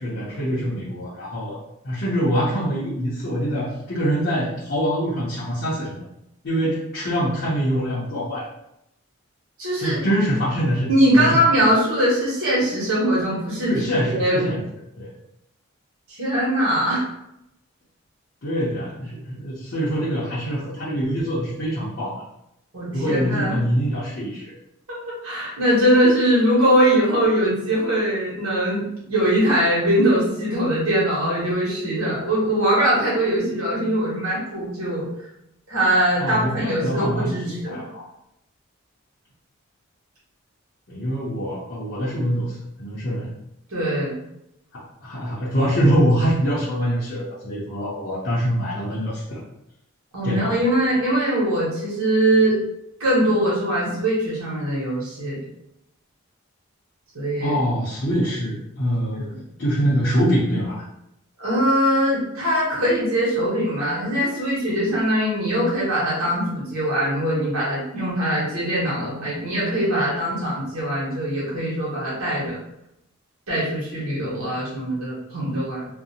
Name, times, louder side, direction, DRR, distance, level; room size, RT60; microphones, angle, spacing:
voice 1, 0.0-1.6 1.8-6.0 6.4-8.5 9.8-11.4 13.7-14.6 15.0-15.1 18.4-22.2 22.9-24.5 36.2-37.4 37.6-38.1 40.9-43.3 44.7-49.4 50.2-50.6 57.4-59.2 59.6-60.9, equal, 50° left, -9 dB, 0.6 m, -24 dB
voice 2, 9.6-10.0 10.9-13.8 14.1-14.5 16.1-17.0 22.7-23.6 24.9-35.1 35.7-37.8 43.7-44.2 50.1-52.6 53.0-55.4 57.1-57.6 59.1-59.4 61.4-72.5 73.5-75.9, right 1 dB, 80° right, -7 dB, 1.1 m, -21 dB
2.5 x 2.0 x 2.7 m, 0.82 s
head